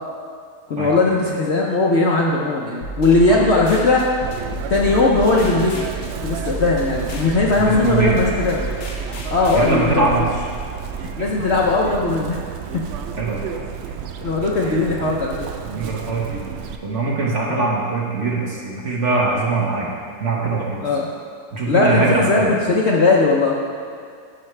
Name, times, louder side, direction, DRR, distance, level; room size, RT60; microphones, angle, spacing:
voice 1, 0.7-4.1 4.7-8.6 9.3-10.1 11.2-12.4 12.7-12.8 14.2-15.5 17.5-17.6 20.8-21.1 21.6-23.6, left 3 dB, 55° left, -3 dB, 0.8 m, -18 dB
sound 1, 2.8-9.7, right 3 dB, 90° left, 1.6 m, -32 dB
Chirp tweet, 4.2-16.8, right 7 dB, 90° right, 0.5 m, -31 dB
voice 2, 7.6-8.2 9.5-10.5 13.2-13.6 15.7-16.4 16.8-20.8 21.5-22.5, right 3 dB, 50° right, -3 dB, 1.5 m, -22 dB
13.0 x 5.9 x 3.3 m, 2.2 s
omnidirectional pair, 1.8 m